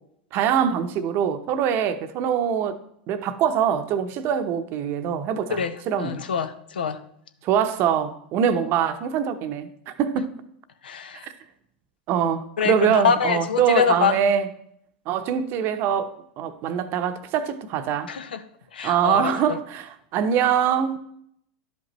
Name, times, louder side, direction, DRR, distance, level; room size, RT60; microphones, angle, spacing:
voice 1, 0.3-2.8 3.1-6.2 7.4-10.3 12.1-14.5 15.1-18.1 18.8-21.0, right 8 dB, 50° right, 0.7 m, -23 dB
voice 2, 5.5-7.0 10.8-11.3 12.6-14.2 18.1-18.4 18.7-19.6, left 6 dB, 85° left, 0.6 m, -25 dB
11.0 x 5.2 x 3.0 m
hypercardioid pair, 95°, 5 cm